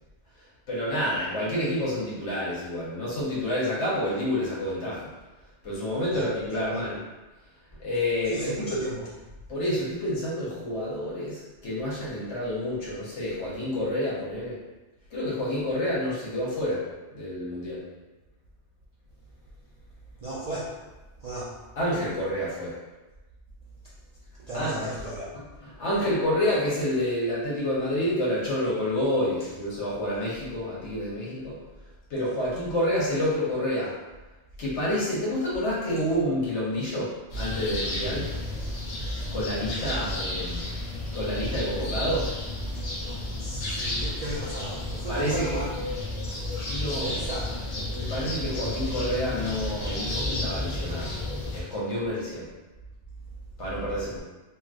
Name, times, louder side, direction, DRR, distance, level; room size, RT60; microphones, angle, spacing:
voice 1, 0.7-5.1 5.6-7.0 7.8-8.8 9.5-14.6 15.1-16.9 17.1-17.8 21.8-22.8 24.5-24.9 25.3-31.6 32.1-33.9 34.6-38.3 39.3-40.6 41.1-42.3 45.1-45.6 46.7-47.2 47.7-51.1 51.5-52.5 53.6-54.2, left 1 dB, 80° left, -7 dB, 1.3 m, -28 dB
voice 2, 6.1-6.9 8.3-9.1 20.2-20.8 21.2-21.6 24.4-25.3 39.7-40.1 42.7-42.8 43.4-45.7 46.8-47.5, right 2 dB, 55° right, -7 dB, 0.4 m, -35 dB
sound 1, 37.3-51.6, left 1 dB, 50° left, 0.7 m, -32 dB
3.0 x 2.6 x 2.5 m, 1.1 s
omnidirectional pair, 1.2 m